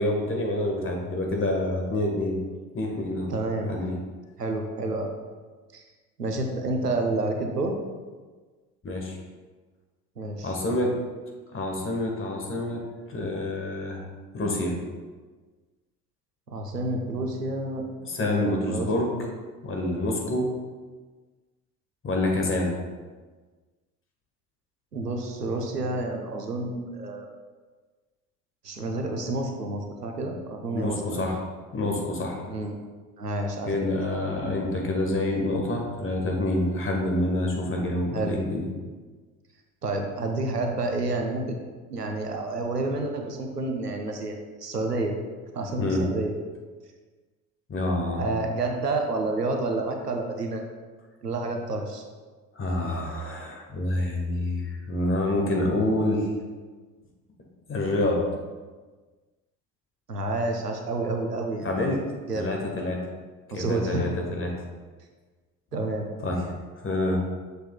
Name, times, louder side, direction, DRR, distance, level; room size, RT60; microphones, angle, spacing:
voice 1, 0.0-2.4 2.7-3.3 3.7-3.9 8.8-9.2 10.4-10.9 11.5-12.8 13.1-14.0 14.3-14.8 18.0-19.1 19.6-20.5 22.0-22.7 30.7-31.4 31.7-32.4 33.7-38.7 45.8-46.0 47.7-48.2 52.5-56.3 57.7-58.2 61.6-62.0 62.3-63.0 63.5-64.5 66.2-66.4 66.8-67.2, left 1 dB, 25° left, 1 dB, 1.5 m, -27 dB
voice 2, 3.3-3.7 4.4-5.1 5.7-5.8 6.2-7.8 10.2-10.5 16.5-17.9 18.2-18.9 24.9-27.3 28.6-31.2 32.5-32.8 33.2-33.8 38.1-38.4 39.8-41.6 41.9-45.2 45.5-46.3 48.2-50.6 51.2-52.0 60.1-61.7 62.3-62.5 63.5-64.0 65.7-66.1, right 2 dB, 90° right, 3 dB, 0.7 m, -29 dB
6.6 x 6.4 x 2.3 m, 1.4 s
figure-of-eight pair, 60°, 46 cm